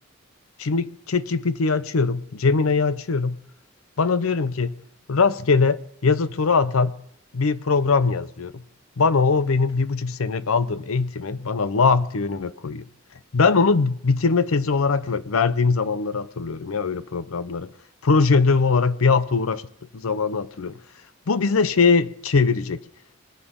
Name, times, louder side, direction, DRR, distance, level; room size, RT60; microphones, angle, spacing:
voice 1, 0.6-3.4 4.0-4.7 5.1-7.0 7.3-8.6 9.0-12.8 13.3-17.7 18.0-19.6 19.9-20.8 21.3-22.8, left 4 dB, 80° left, 0.6 m, -21 dB
21.0 x 7.1 x 5.2 m
head